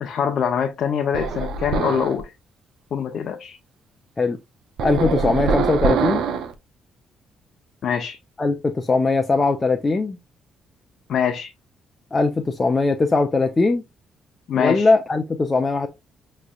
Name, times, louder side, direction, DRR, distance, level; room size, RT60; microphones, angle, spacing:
voice 1, 0.0-2.3 2.9-3.6 7.8-8.2 11.1-11.5 14.5-14.9, left 7 dB, 60° left, 0.7 m, -24 dB
sound 1, 1.1-2.2 4.8-6.5, right 5 dB, 75° right, 0.7 m, -23 dB
voice 2, 4.8-6.2 8.4-10.2 12.1-13.8 14.6-15.9, left 3 dB, 25° left, 0.6 m, -20 dB
6.3 x 3.2 x 2.3 m
cardioid pair, 90°, 0 cm